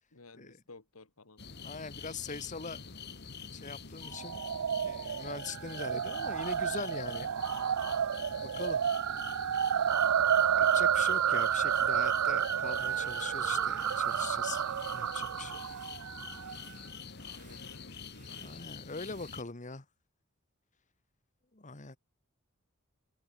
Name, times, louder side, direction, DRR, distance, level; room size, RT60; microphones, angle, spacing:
voice 1, 0.1-1.4 17.1-18.7, left 3 dB, 75° left, 2.3 m, -55 dB
sound 1, 1.4-19.4, left 5 dB, 50° left, 2.1 m, -46 dB
voice 2, 1.6-2.8 3.5-4.4 4.8-7.6 8.4-8.8 10.5-14.6 14.9-15.6 18.3-19.8 21.5-22.0, left 4 dB, 35° left, 1.6 m, -42 dB
sound 2, 4.1-16.6, right 8 dB, 70° right, 0.4 m, -30 dB
sound 3, 12.7-13.3 13.7-14.3 14.6-16.1 16.3-19.4, right 8 dB, 35° right, 3.9 m, -61 dB
head